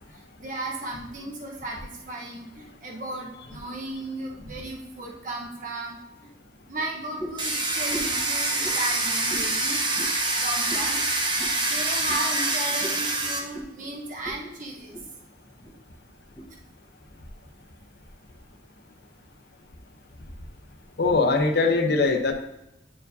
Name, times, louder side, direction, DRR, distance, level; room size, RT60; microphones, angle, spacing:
voice 1, 0.4-6.3 6.7-9.9 10.4-15.0, right 1 dB, 45° right, -1 dB, 1.1 m, -35 dB
sound 1, 7.2-7.5 7.9-8.2 8.6-8.8 9.3-9.5 9.9-10.1 10.7-10.9 11.4-11.6 12.1-12.2 12.8-13.0 13.5-13.7 14.2-14.4 14.7-15.1 15.6-15.7 16.3-16.5, right 1 dB, 5° left, 1.1 m, -38 dB
Domestic sounds home sounds, 7.4-13.4, right 2 dB, 25° right, 0.9 m, -26 dB
voice 2, 21.0-22.3, left 3 dB, 60° left, 5 dB, 0.8 m, -21 dB
9.6 x 4.6 x 2.7 m, 0.90 s
head